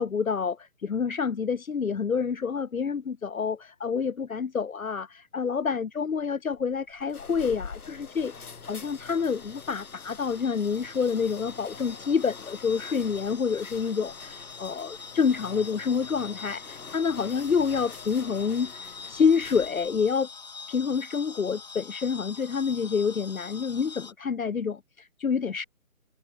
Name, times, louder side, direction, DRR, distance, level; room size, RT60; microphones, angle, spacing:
voice 1, 0.0-20.3 20.7-25.6, left 6 dB, 70° left, 1.0 m, -28 dB
sound 1, 6.5-20.0, left 5 dB, 85° left, 1.4 m, -45 dB
sound 2, 7.9-24.1, left 5 dB, 30° left, 1.5 m, -45 dB
figure-of-eight pair, 170°, 43 cm